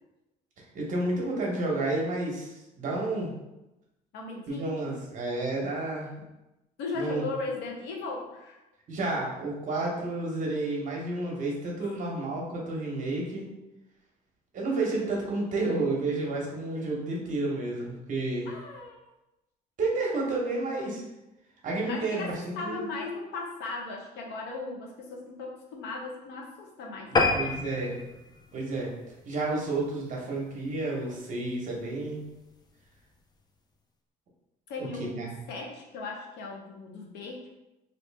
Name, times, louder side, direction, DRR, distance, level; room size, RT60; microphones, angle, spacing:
voice 1, 0.7-3.3 4.5-6.1 6.9-7.2 8.9-13.4 14.5-18.5 19.8-21.0 21.6-22.9 27.3-27.9 28.5-28.9 29.2-32.2 34.8-35.4, right 2 dB, 50° right, -2 dB, 1.0 m, -31 dB
voice 2, 4.1-4.9 6.8-8.6 11.8-12.0 18.5-19.0 21.9-27.4 34.7-37.5, left 3 dB, 80° left, 0 dB, 0.8 m, -37 dB
sound 1, 27.2-29.9 30.4-30.6 31.0-31.1 31.4-31.5 31.8-31.9, left 3 dB, 25° left, 0.4 m, -29 dB
2.9 x 2.7 x 3.4 m, 0.95 s
cardioid pair, 110°, 17 cm